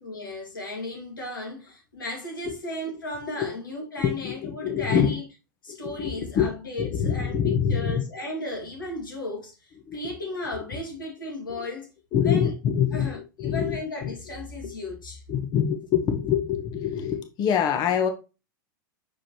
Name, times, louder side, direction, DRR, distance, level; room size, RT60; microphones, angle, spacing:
voice 1, 0.0-5.2 5.6-11.9 12.2-12.5 12.9-15.2, left 1 dB, 85° left, 2.3 m, -35 dB
voice 2, 4.0-5.2 5.7-6.5 6.8-8.0 9.9-10.1 10.5-10.6 11.5-11.7 12.1-13.1 13.4-14.1 14.6-14.7 15.3-18.1, left 8 dB, 40° left, 1.1 m, -25 dB
6.3 x 5.0 x 3.0 m
hypercardioid pair, 95°, 11 cm